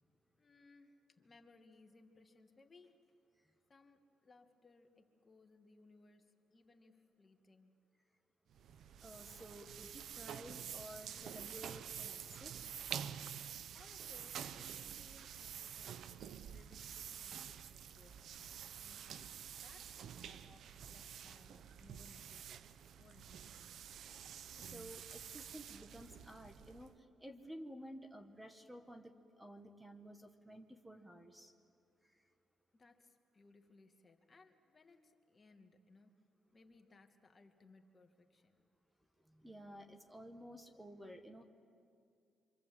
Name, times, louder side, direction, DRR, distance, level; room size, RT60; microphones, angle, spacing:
voice 1, 0.4-3.1 3.7-7.9 13.7-18.2 18.8-19.4 19.6-22.6 22.9-23.7 32.7-36.2 36.5-38.6, left 3 dB, 30° left, 5 dB, 2.0 m, -65 dB
sound 1, 8.5-27.0, right 8 dB, 70° right, 0.8 m, -49 dB
voice 2, 9.0-12.6 24.6-31.5 32.0-32.3 39.2-41.4, equal, 10° right, 6 dB, 1.7 m, -53 dB
27.5 x 25.5 x 7.8 m, 2.3 s
cardioid pair, 90°, 0 cm